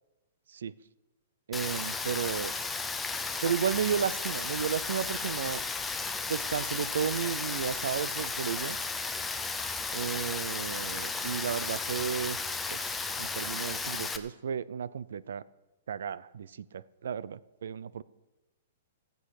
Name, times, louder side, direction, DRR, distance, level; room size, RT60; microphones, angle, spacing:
Rain, 1.5-14.2, left 4 dB, 5° left, 0.6 m, -34 dB
voice 1, 1.5-2.5 3.4-5.6 6.3-8.8 9.9-12.4 12.7-15.4 15.9-18.0, right 7 dB, 85° right, 19 dB, 0.6 m, -33 dB
16.0 x 8.0 x 6.5 m, 1.1 s
hypercardioid pair, 170°, 0 cm